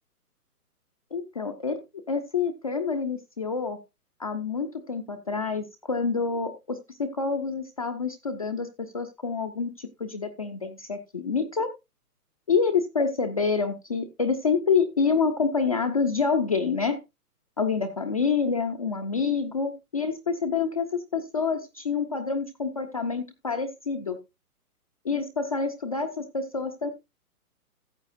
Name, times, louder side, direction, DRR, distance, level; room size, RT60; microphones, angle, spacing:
voice 1, 1.1-3.8 4.2-11.7 12.5-17.0 17.6-24.2 25.0-26.9, left 5 dB, 25° left, 3 dB, 0.4 m, -27 dB
14.0 x 7.9 x 2.5 m, 0.23 s
hypercardioid pair, 150°, 46 cm